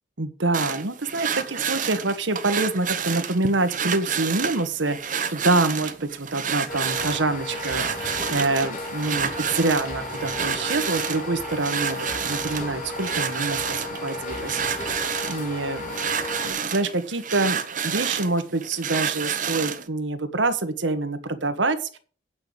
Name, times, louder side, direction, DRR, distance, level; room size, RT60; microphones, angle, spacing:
voice 1, 0.2-16.0 16.4-17.6 17.8-22.0, right 2 dB, 75° right, 10 dB, 1.3 m, -26 dB
sound 1, 0.5-19.9, right 7 dB, 45° right, 0.9 m, -30 dB
sound 2, 6.7-16.5, left 1 dB, 45° left, 3.4 m, -34 dB
9.0 x 5.8 x 7.9 m, 0.41 s
head